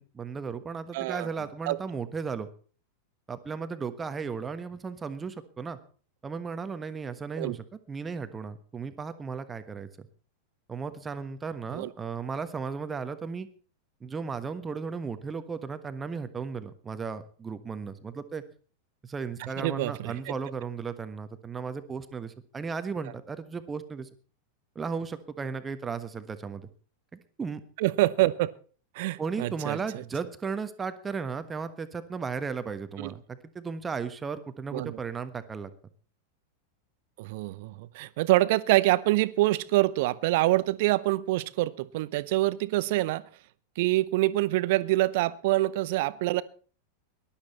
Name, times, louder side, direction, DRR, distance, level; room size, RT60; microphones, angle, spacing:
voice 1, 0.0-2.5 3.3-5.8 6.2-10.1 10.7-13.5 14.0-18.4 19.0-24.1 24.7-26.7 27.4-27.6 29.2-35.7, right 5 dB, 15° right, 10 dB, 1.3 m, -35 dB
voice 2, 0.9-1.3 1.7-1.8 7.4-7.6 11.7-11.9 19.4-20.3 27.8-28.5 28.9-30.0 33.0-33.1 34.7-35.0 37.2-43.2 43.8-46.4, right 18 dB, 50° right, 17 dB, 0.8 m, -26 dB
19.5 x 12.0 x 4.2 m, 0.40 s
figure-of-eight pair, 90°, 0 cm